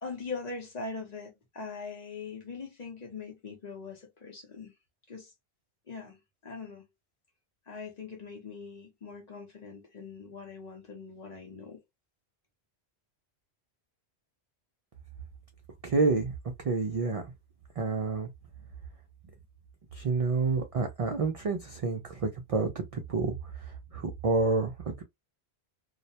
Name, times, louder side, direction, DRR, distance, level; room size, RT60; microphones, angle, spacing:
voice 1, 0.0-4.7 5.1-5.3 5.9-6.8 7.7-11.8, left 4 dB, 45° left, 0.7 m, -42 dB
voice 2, 15.8-16.3 16.6-17.2 17.8-18.3 19.9-23.3 23.9-24.7, right 4 dB, 60° right, 0.3 m, -28 dB
2.2 x 2.0 x 2.7 m
omnidirectional pair, 1.1 m